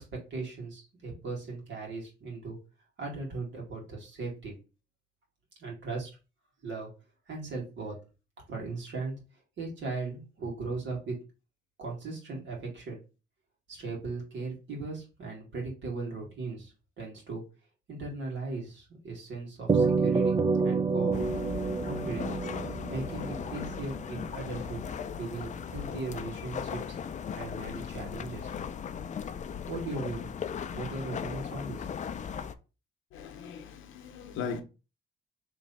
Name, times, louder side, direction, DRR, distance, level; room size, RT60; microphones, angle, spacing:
voice 1, 0.3-2.6 3.0-4.5 5.6-6.2 6.6-6.9 7.3-8.0 8.5-9.2 9.6-11.2 11.8-13.0 13.7-17.4 17.9-21.2 21.8-22.3 22.9-24.8 25.2-26.8 27.1-28.5 29.7-30.3 30.7-31.9, right 3 dB, 70° right, 2.1 m, -38 dB
sound 1, 19.7-24.3, right 4 dB, 25° right, 0.4 m, -28 dB
sound 2, 21.1-32.5, left 7 dB, 40° left, 0.4 m, -37 dB
voice 2, 33.1-34.6, left 6 dB, 85° left, 0.8 m, -38 dB
3.3 x 3.1 x 4.0 m
cardioid pair, 90°, 20 cm